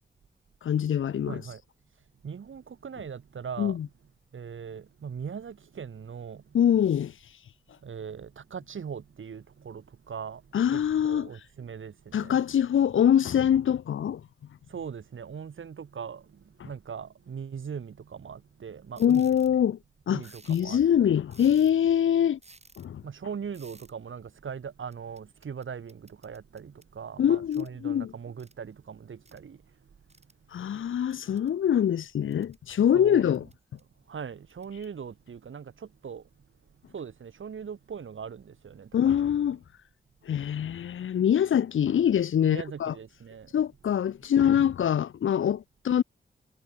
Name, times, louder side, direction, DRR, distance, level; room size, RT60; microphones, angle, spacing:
voice 1, 0.6-1.4 3.6-3.8 6.5-7.1 10.5-11.3 12.1-14.2 16.6-16.7 19.0-19.8 20.1-20.2 20.5-22.4 22.8-23.0 27.2-28.1 30.5-33.4 38.9-39.6 40.3-42.9 43.5-46.0, left 9 dB, 75° left, 0.5 m, -24 dB
voice 2, 1.2-1.6 2.2-3.8 4.3-6.4 7.8-10.4 10.7-12.4 14.7-19.6 20.1-21.2 23.0-29.6 32.9-33.4 34.1-36.2 36.9-38.9 42.4-43.5, right 7 dB, 80° right, 1.6 m, -40 dB
sound 1, 19.0-19.6 20.2-20.8 21.3-21.9 22.4-22.9 23.5-23.9 24.9-26.9 27.5-27.7 28.4-28.5 29.3-29.4 30.1-30.3 31.1-31.6 32.1-32.6 33.3-33.8 34.5-34.9, right 2 dB, 30° right, 4.2 m, -56 dB
cardioid pair, 60°, 20 cm